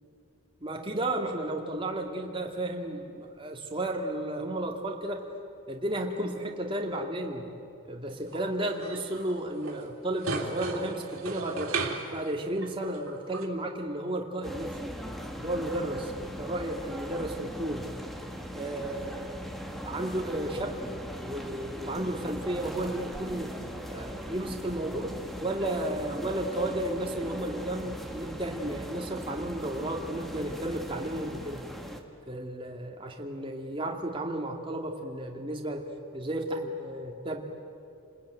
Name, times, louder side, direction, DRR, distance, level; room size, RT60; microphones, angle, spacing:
voice 1, 0.6-5.2 5.7-7.5 7.8-11.7 12.1-14.8 15.4-17.9 18.5-20.8 21.2-23.5 23.9-31.6 32.3-35.9 36.1-37.4, right 1 dB, 25° right, 2 dB, 2.3 m, -33 dB
sound 1, 8.3-9.4 9.6-9.8 10.2-12.3 12.6-13.4, right 3 dB, 80° right, 3.1 m, -35 dB
sound 2, 14.4-32.0, equal, ahead, 1.6 m, -39 dB
29.5 x 20.5 x 9.3 m, 2.6 s
head